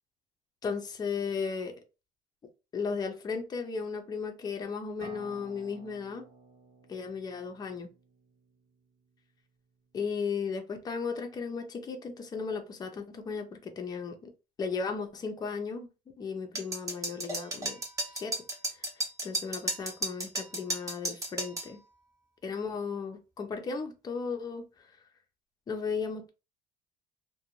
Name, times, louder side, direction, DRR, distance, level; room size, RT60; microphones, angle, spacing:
voice 1, 0.6-1.7 2.7-6.3 6.9-7.9 9.9-14.3 14.6-15.9 16.2-17.8 18.1-18.4 19.2-21.8 22.4-24.7 25.7-26.3, left 5 dB, 25° left, 0.5 m, -35 dB
sound 1, 5.0-8.8, right 2 dB, 50° right, 1.2 m, -53 dB
sound 2, 16.6-21.7, right 1 dB, 20° right, 0.8 m, -34 dB
2.5 x 2.2 x 2.9 m
cardioid pair, 125°, 15 cm